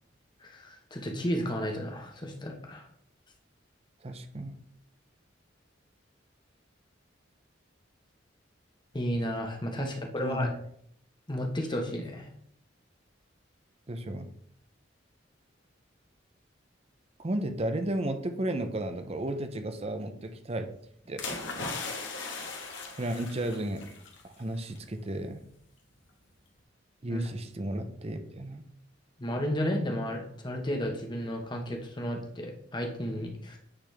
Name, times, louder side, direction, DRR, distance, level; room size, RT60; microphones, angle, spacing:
voice 1, 0.4-2.9 8.9-10.5 11.3-12.3 27.1-27.3 29.2-33.6, equal, 25° left, 2 dB, 1.1 m, -33 dB
voice 2, 4.0-4.5 9.8-9.9 10.2-10.5 13.9-14.3 17.2-20.7 21.1-21.2 23.0-23.8 24.2-25.4 27.0-28.6, right 1 dB, 30° right, 8 dB, 0.6 m, -33 dB
sound 1, 21.2-24.2 24.5-24.8, left 3 dB, 75° left, 1.5 m, -38 dB
8.9 x 4.1 x 3.4 m, 0.66 s
head